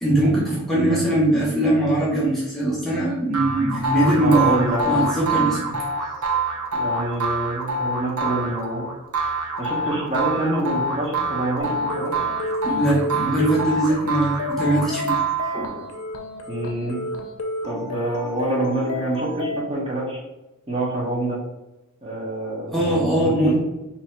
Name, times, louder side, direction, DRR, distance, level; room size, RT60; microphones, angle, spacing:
voice 1, 0.0-4.6 4.9-5.8 6.2-6.3 12.7-15.1 15.5-15.8 22.7-23.6, right 1 dB, ahead, -6 dB, 0.8 m, -21 dB
sound 1, 3.3-15.9, right 2 dB, 75° right, 0.7 m, -26 dB
voice 2, 4.2-5.0 6.7-8.9 9.6-12.2 16.5-17.0 17.6-20.2 20.7-21.4 22.0-23.6, right 1 dB, 25° right, -3 dB, 0.9 m, -26 dB
sound 2, 11.6-19.6, left 2 dB, 85° left, 0.5 m, -31 dB
2.8 x 2.7 x 4.3 m, 0.97 s
head